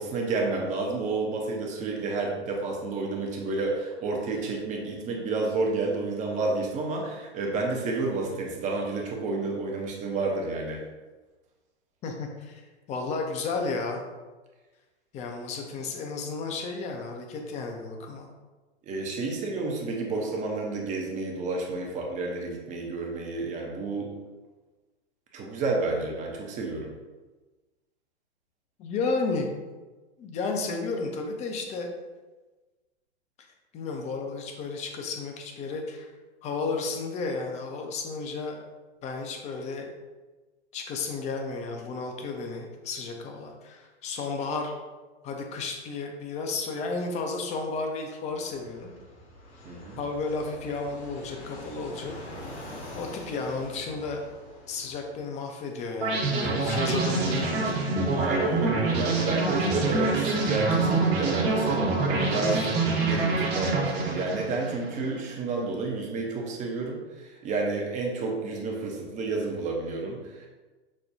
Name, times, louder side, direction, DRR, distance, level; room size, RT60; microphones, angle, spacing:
voice 1, 0.0-10.8 18.9-24.2 25.3-26.9 49.6-50.0 58.1-62.7 63.0-70.5, right 3 dB, 20° right, 0 dB, 0.6 m, -30 dB
voice 2, 12.0-12.6 12.9-14.0 15.1-18.3 28.8-29.5 30.2-31.9 33.4-33.5 33.7-36.1 36.4-38.6 39.0-39.9 40.7-44.7 45.2-48.9 50.0-52.1 52.9-54.2 54.7-57.9, left 4 dB, 20° left, 3 dB, 0.5 m, -33 dB
Fixed-wing aircraft airplane, 48.4-55.2, left 1 dB, 65° left, 1.4 m, -44 dB
sound 1, 56.0-65.1, right 3 dB, 55° right, 1.3 m, -26 dB
6.1 x 2.3 x 2.6 m, 1.2 s
hypercardioid pair, 105°, 34 cm